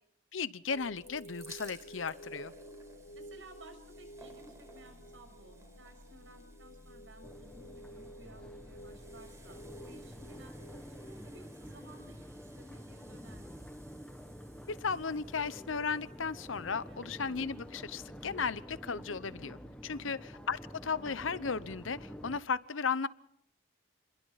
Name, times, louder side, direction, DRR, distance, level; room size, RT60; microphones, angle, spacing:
voice 1, 0.3-2.5 14.7-23.1, left 5 dB, 85° left, 16 dB, 0.9 m, -35 dB
sound 1, 0.7-11.4, equal, 65° left, 2.5 m, -51 dB
sound 2, 0.9-17.7 18.5-18.6 18.8-18.9, right 2 dB, 15° right, 4.6 m, -59 dB
voice 2, 3.1-12.3 12.6-13.7 16.9-17.2 19.9-20.2, right 1 dB, 75° right, 6 dB, 6.7 m, -57 dB
Crowd, 7.2-22.4, equal, 5° left, 1.6 m, -48 dB
29.5 x 22.0 x 4.2 m, 0.70 s
head